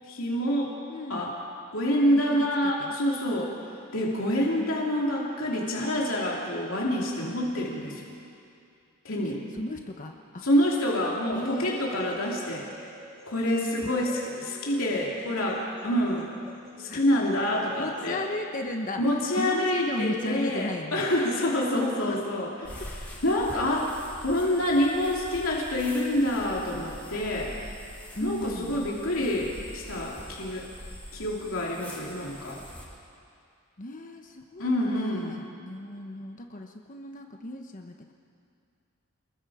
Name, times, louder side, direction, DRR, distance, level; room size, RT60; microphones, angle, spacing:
voice 1, 0.0-0.7 1.1-1.3 1.7-3.5 3.9-8.1 9.0-9.4 10.4-12.7 13.2-14.1 14.6-16.3 16.8-18.2 19.0-22.8 23.2-27.5 28.2-30.7 31.1-32.6 34.6-35.4, left 1 dB, 65° left, -3 dB, 3.0 m, -27 dB
voice 2, 0.9-1.3 1.9-2.0 2.3-3.0 9.2-10.5 11.3-12.0 13.8-14.3 16.9-17.2 17.5-19.0 19.4-21.0 22.1-22.3 22.6-22.7 24.2-24.3 28.1-28.8 33.8-38.1, left 1 dB, 35° left, 3 dB, 1.0 m, -36 dB
sound 1, 11.4-18.0, right 1 dB, 20° right, 6.3 m, -48 dB
sound 2, 22.6-32.8, left 1 dB, 5° left, 5.6 m, -44 dB
28.5 x 21.0 x 5.0 m, 2.5 s
head